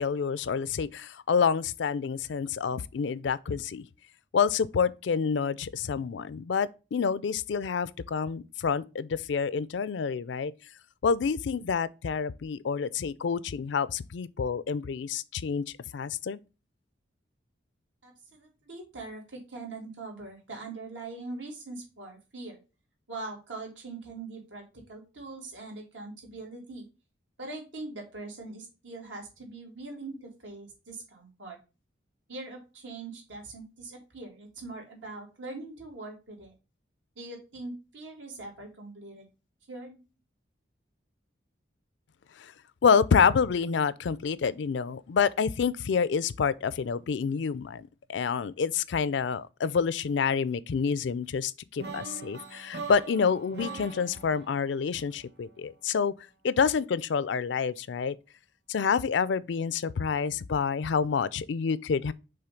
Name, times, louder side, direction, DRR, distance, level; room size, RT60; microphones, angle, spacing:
voice 1, 0.0-3.9 4.3-10.5 11.0-15.6 15.9-16.4 42.4-42.5 42.8-56.1 56.4-58.2 58.7-62.1, left 6 dB, 75° left, 0.4 m, -28 dB
voice 2, 18.0-22.6 23.1-26.8 27.4-31.6 32.3-36.5 37.2-39.3 39.7-40.0, right 3 dB, 85° right, 2.5 m, -42 dB
sound 1, 51.8-55.8, right 4 dB, 60° right, 1.5 m, -42 dB
5.7 x 3.5 x 5.1 m
head